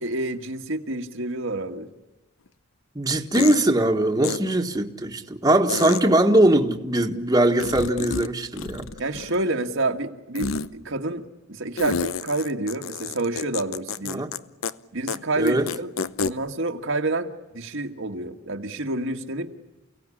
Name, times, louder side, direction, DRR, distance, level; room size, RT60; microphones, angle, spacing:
voice 1, 0.0-1.9 9.0-14.3 14.9-15.9 16.2-19.6, right 2 dB, 65° right, 1.7 m, -28 dB
sound 1, 2.5-2.6 3.3-3.6 4.2-4.4 5.7-6.0 7.6-8.3 8.6-9.5 10.3-10.7 11.8-14.4 14.6-14.7 15.1-15.2 15.5-16.3, left 5 dB, 75° left, 0.9 m, -29 dB
voice 2, 3.0-8.9 14.1-14.3 15.4-15.7, right 1 dB, 20° right, 1.7 m, -21 dB
29.5 x 17.5 x 9.9 m
head